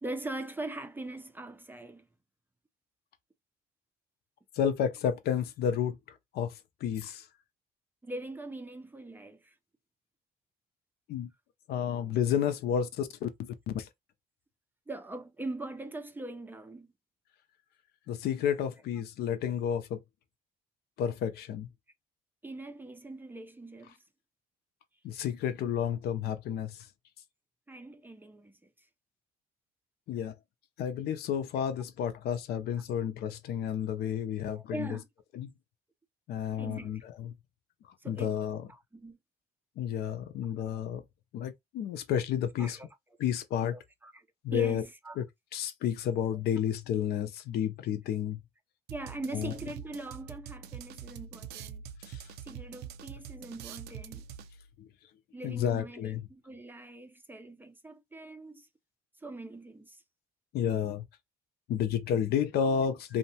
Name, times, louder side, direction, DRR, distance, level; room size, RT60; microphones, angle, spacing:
voice 1, 0.0-2.1 8.0-9.5 14.9-16.9 22.4-23.9 27.7-28.7 31.6-31.7 32.8-32.9 34.5-35.1 36.6-37.0 38.0-38.4 38.7-39.2 42.6-43.0 43.7-44.2 44.5-45.2 46.3-46.4 48.9-51.8 52.4-54.3 55.3-56.0 56.3-58.7 59.2-60.0, right 2 dB, 10° right, 0.4 m, -42 dB
voice 2, 4.5-7.3 11.1-11.3 11.7-13.9 18.1-20.0 21.0-21.7 25.0-26.9 30.1-30.3 30.8-34.9 35.3-35.5 36.3-37.3 38.1-38.7 39.8-41.0 41.3-42.8 43.2-43.8 44.4-44.8 45.2-45.3 45.5-48.4 49.3-49.5 52.1-52.2 54.8-54.9 55.4-56.3 60.5-61.1 61.7-63.2, left 8 dB, 70° left, 0.6 m, -31 dB
sound 1, 48.9-54.7, right 8 dB, 75° right, 0.4 m, -45 dB
2.7 x 2.1 x 2.7 m
cardioid pair, 110°, 17 cm